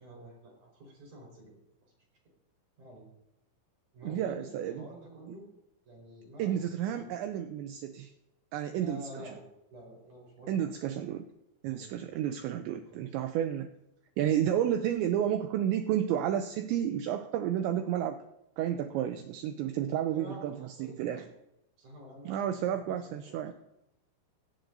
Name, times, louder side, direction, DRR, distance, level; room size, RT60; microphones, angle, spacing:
voice 1, 0.0-1.6 2.8-3.1 3.9-5.5 5.8-7.1 8.7-9.4 9.7-10.7 11.6-12.0 12.6-13.1 13.3-13.4 14.2-14.4 20.1-21.3 21.8-23.5, right 1 dB, 40° right, -2 dB, 5.7 m, -49 dB
voice 2, 4.0-4.9 6.4-8.1 8.5-9.3 10.5-11.2 11.6-13.7 14.2-18.2 18.6-21.3 22.3-23.5, right 10 dB, 85° right, 7 dB, 2.6 m, -31 dB
17.0 x 17.0 x 2.7 m, 0.86 s
omnidirectional pair, 5.9 m